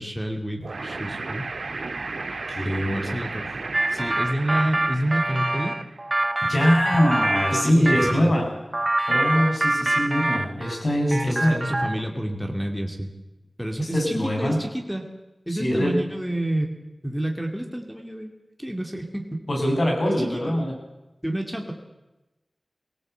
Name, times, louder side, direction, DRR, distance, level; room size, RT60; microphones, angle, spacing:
voice 1, 0.0-1.5 2.6-3.5 3.9-5.8 7.5-8.3 11.1-13.1 13.6-15.1 15.5-16.7 17.0-18.3 18.6-19.3 20.0-20.6 21.2-21.7, right 1 dB, ahead, 2 dB, 2.6 m, -29 dB
sound 1, 0.6-6.0, right 3 dB, 85° right, 1.6 m, -34 dB
voice 2, 2.5-3.0 6.4-8.5 9.1-11.6 13.8-14.6 15.5-16.0 19.5-20.7, equal, 60° left, 1 dB, 6.8 m, -23 dB
sound 2, 3.7-8.2 8.7-10.8 11.1-12.1, right 1 dB, 30° right, 0.8 m, -25 dB
20.5 x 18.0 x 8.0 m, 1.0 s
wide cardioid pair, 80°, 0 cm